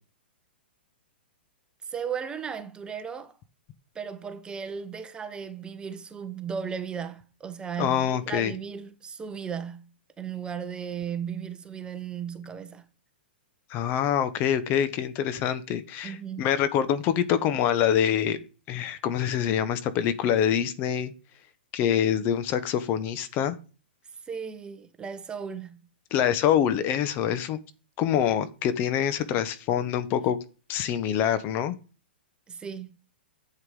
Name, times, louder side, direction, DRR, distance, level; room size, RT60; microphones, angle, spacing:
voice 1, 1.8-3.4 3.9-9.9 10.2-12.9 16.0-16.5 24.3-25.8 32.5-33.0, right 7 dB, 15° right, 1.1 m, -36 dB
voice 2, 7.8-8.5 13.7-18.4 18.7-21.1 21.7-23.6 26.1-27.6 28.0-30.4 30.7-31.7, left 9 dB, 35° left, 1.2 m, -25 dB
11.0 x 8.2 x 5.4 m
hypercardioid pair, 115°, 6 cm